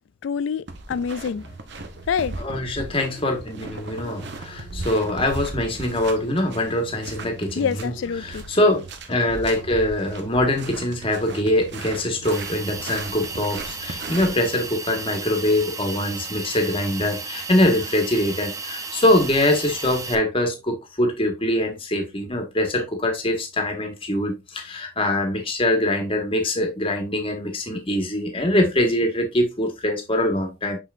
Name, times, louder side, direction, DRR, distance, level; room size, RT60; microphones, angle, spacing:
voice 1, 0.2-1.4 2.1-2.3 7.6-8.4, left 6 dB, 70° left, 0.3 m, -26 dB
sound 1, 0.7-14.3, right 2 dB, 60° right, 1.1 m, -37 dB
voice 2, 2.4-7.9 8.2-30.8, left 1 dB, 30° left, 1.7 m, -23 dB
Hiss, 12.3-20.1, right 4 dB, 15° right, 0.6 m, -34 dB
6.2 x 5.9 x 2.6 m
head